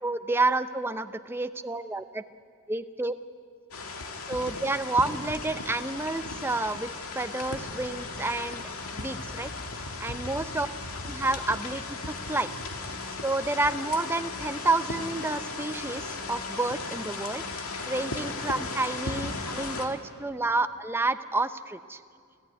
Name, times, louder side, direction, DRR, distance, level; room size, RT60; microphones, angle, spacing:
voice 1, 0.0-2.2 2.7-3.1 4.3-6.9 7.1-8.6 8.9-9.5 10.0-10.7 11.1-12.5 13.2-17.4 17.9-22.0, right 2 dB, 10° right, 10 dB, 0.6 m, -29 dB
sound 1, 3.7-19.9, left 3 dB, 80° left, 2.2 m, -36 dB
26.5 x 14.5 x 9.4 m, 2.3 s
head